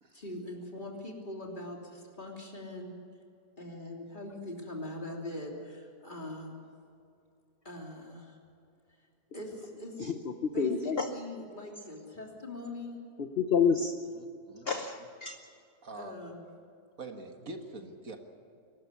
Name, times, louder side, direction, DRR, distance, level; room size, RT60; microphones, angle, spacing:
voice 1, 0.1-2.9 3.6-6.6 7.6-8.4 9.3-10.0 10.5-13.0 15.9-16.4, left 1 dB, 30° left, 0 dB, 3.3 m, -42 dB
voice 2, 10.0-11.1 13.2-13.9 14.6-15.4, left 6 dB, 45° left, 6 dB, 1.0 m, -29 dB
voice 3, 14.2-14.7 15.8-16.2 17.0-18.2, right 3 dB, 55° right, 5 dB, 1.9 m, -44 dB
23.0 x 13.0 x 9.7 m, 2.5 s
omnidirectional pair, 1.8 m